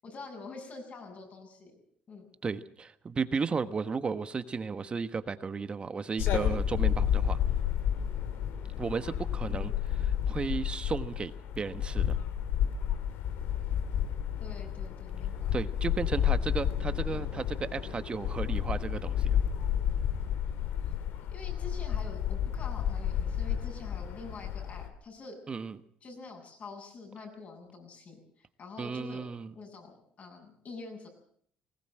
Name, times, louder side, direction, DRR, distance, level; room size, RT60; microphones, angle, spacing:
voice 1, 0.0-1.8 2.1-2.3 9.5-9.8 14.4-15.5 15.8-15.9 21.3-25.4 26.0-29.2 29.5-31.1, left 3 dB, 45° left, 2 dB, 7.7 m, -46 dB
voice 2, 2.4-7.4 8.8-9.7 10.0-12.2 15.5-19.4 25.5-25.8 28.8-29.5, right 5 dB, 30° right, 12 dB, 1.2 m, -34 dB
sound 1, 6.2-24.9, left 9 dB, 80° left, 2.3 m, -31 dB
20.0 x 17.5 x 7.8 m, 0.63 s
cardioid pair, 105°, 3 cm